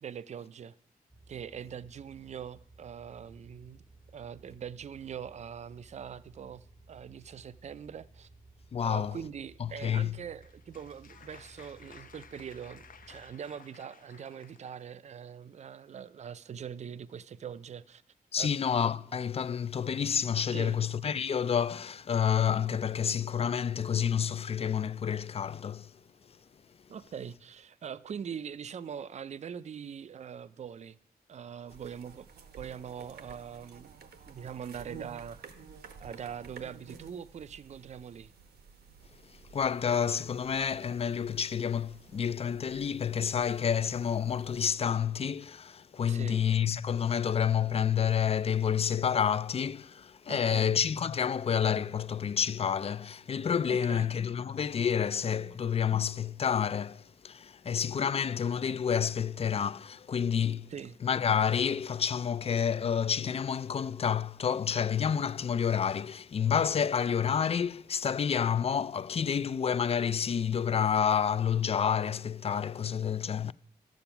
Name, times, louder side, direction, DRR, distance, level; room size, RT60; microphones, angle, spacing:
voice 1, 0.0-0.7 1.3-3.8 4.1-8.3 8.8-18.0 18.4-18.5 20.5-20.8 26.9-31.0 31.3-32.3 32.6-33.9 34.3-35.4 36.0-38.3 46.1-46.4 50.3-50.8 53.7-54.1 55.4-55.5 60.7-61.0, right 8 dB, 45° right, 0.4 m, -42 dB
sound 1, 1.1-13.4, right 2 dB, ahead, 0.8 m, -57 dB
voice 2, 8.7-9.2 9.6-10.2 18.3-25.9 39.5-60.7 61.0-73.5, left 7 dB, 40° left, 0.4 m, -29 dB
Applause, 10.2-14.9, left 6 dB, 60° left, 0.7 m, -56 dB
sound 2, 31.7-44.7, right 6 dB, 85° right, 1.0 m, -52 dB
11.5 x 7.1 x 5.9 m
cardioid pair, 75°, 16 cm